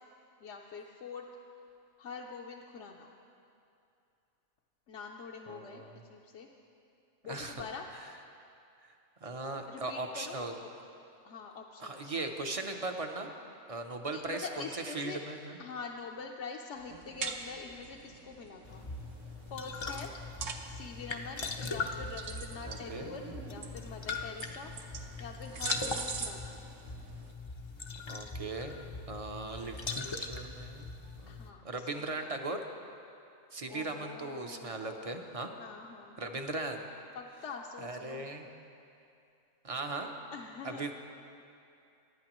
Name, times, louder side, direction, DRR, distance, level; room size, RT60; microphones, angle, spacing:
voice 1, 0.4-1.2 2.0-3.1 4.9-6.5 7.2-7.9 9.7-10.7 11.2-12.2 14.1-15.2 15.6-18.9 19.5-20.1 20.7-26.6 31.3-32.3 33.7-34.8 35.6-36.4 37.1-38.3 40.3-40.9, left 5 dB, 65° left, -1 dB, 1.0 m, -45 dB
voice 2, 5.5-5.9 7.3-7.7 9.2-10.5 11.8-13.3 13.7-14.5 14.9-15.6 22.6-23.1 28.1-32.6 33.5-35.5 36.2-36.8 37.8-38.5 39.6-40.1 40.6-40.9, right 2 dB, 35° right, 4 dB, 0.6 m, -38 dB
sound 1, 16.8-27.3, right 5 dB, 70° right, 1.2 m, -44 dB
sound 2, 18.6-31.5, left 3 dB, 35° left, 0.5 m, -40 dB
23.5 x 10.5 x 3.0 m, 2.6 s
omnidirectional pair, 1.4 m